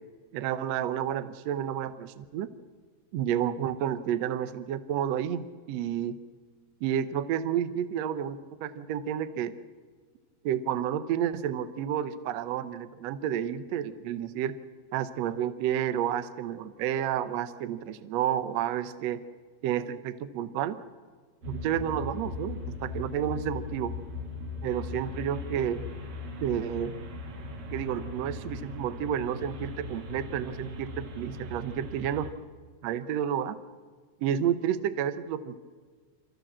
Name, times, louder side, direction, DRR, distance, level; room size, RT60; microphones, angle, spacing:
voice 1, 0.3-2.5 3.1-6.2 6.8-9.5 10.4-14.6 14.9-19.2 19.6-20.8 21.5-24.0 24.6-25.8 26.4-26.9 27.7-32.3 32.8-33.6 34.2-35.6, right 10 dB, 85° right, 13 dB, 1.4 m, -30 dB
sound 1, 21.4-32.3, left 2 dB, 55° right, 3.1 m, -39 dB
28.5 x 14.5 x 7.5 m, 1.5 s
omnidirectional pair, 4.3 m